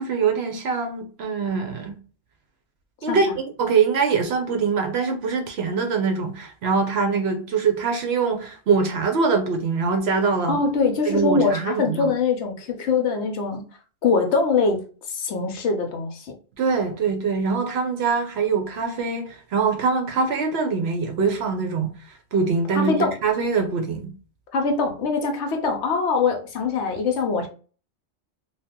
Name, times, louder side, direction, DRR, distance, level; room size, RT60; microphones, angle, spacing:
voice 1, 0.0-2.0 3.0-3.3 3.6-10.6 11.1-12.1 16.6-22.9 23.2-24.1, right 5 dB, 65° right, 0.8 m, -23 dB
voice 2, 10.5-13.6 14.0-16.3 22.7-23.1 24.5-27.5, left 4 dB, 65° left, 0.9 m, -23 dB
2.7 x 2.3 x 3.5 m
omnidirectional pair, 1.3 m